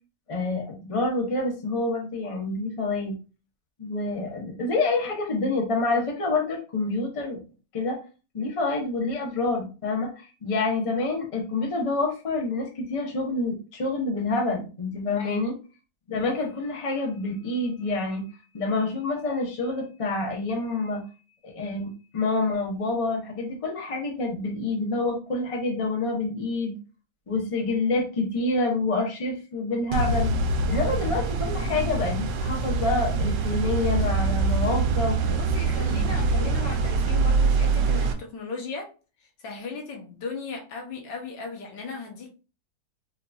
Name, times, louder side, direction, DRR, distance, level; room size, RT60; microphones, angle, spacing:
voice 1, 0.3-3.2 3.8-7.4 7.7-8.0 8.3-15.5 16.1-18.3 18.5-21.0 21.4-26.8 27.3-30.3 30.7-35.4 35.9-36.1 36.4-36.5, left 3 dB, 50° left, 0.4 m, -27 dB
sound 1, 29.9-38.1, right 3 dB, 75° right, 1.2 m, -24 dB
voice 2, 35.3-38.9 39.4-42.3, left 4 dB, 75° left, 1.6 m, -36 dB
4.4 x 2.6 x 2.3 m
omnidirectional pair, 2.0 m